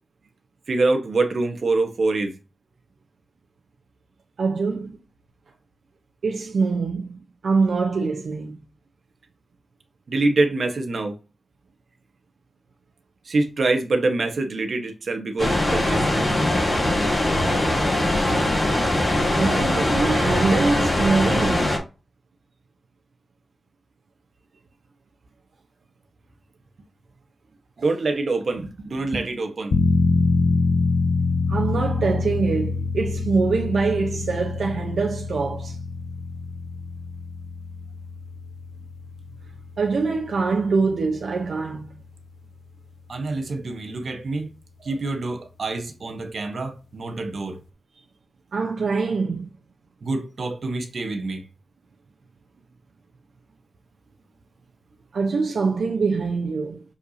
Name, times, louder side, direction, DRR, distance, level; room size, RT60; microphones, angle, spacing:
voice 1, 0.7-2.3 10.1-11.2 13.3-16.1 27.8-29.8 43.1-44.5 44.8-47.6 50.0-51.4, right 3 dB, 60° right, 1.3 m, -25 dB
voice 2, 4.4-5.0 6.2-8.6 19.3-21.7 31.5-35.8 39.8-41.9 48.5-49.5 55.1-56.8, right 4 dB, 85° right, 0.9 m, -24 dB
sound 1, 15.4-21.8, left 1 dB, 20° left, 3.3 m, -21 dB
sound 2, 29.7-42.2 42.6-42.7, left 4 dB, 80° left, 0.9 m, -26 dB
6.7 x 5.6 x 2.8 m
wide cardioid pair, 160°, 0 cm